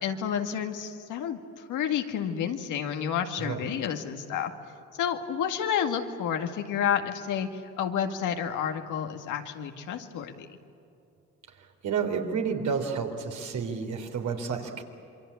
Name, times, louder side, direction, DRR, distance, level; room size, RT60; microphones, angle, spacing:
voice 1, 0.0-4.5 5.0-10.5, left 8 dB, 85° left, 5 dB, 2.1 m, -30 dB
voice 2, 11.8-14.8, right 6 dB, 70° right, 4 dB, 3.8 m, -30 dB
27.0 x 24.0 x 8.5 m, 2.8 s
cardioid pair, 90°, 30 cm